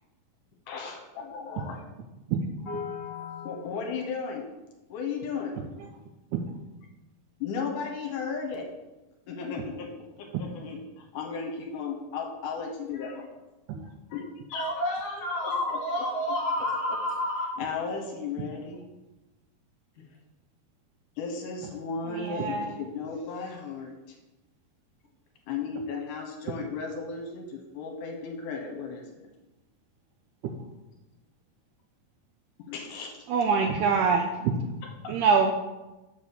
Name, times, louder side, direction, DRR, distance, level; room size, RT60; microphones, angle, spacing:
voice 1, 0.7-1.8 3.4-4.5 4.9-5.6 7.4-8.7 9.3-9.9 10.2-13.3 14.1-14.7 15.4-15.8 17.6-18.9 21.2-24.2 25.5-29.0 32.6-33.2 34.8-35.2, left 5 dB, 70° left, 1 dB, 2.3 m, -35 dB
voice 2, 2.7-3.7 14.5-17.5, left 1 dB, 50° left, -2 dB, 2.4 m, -30 dB
voice 3, 22.1-22.7 30.4-30.6 33.3-34.6 35.1-35.5, right 5 dB, 85° right, 3 dB, 1.8 m, -25 dB
7.3 x 4.1 x 6.7 m, 1.1 s
omnidirectional pair, 4.1 m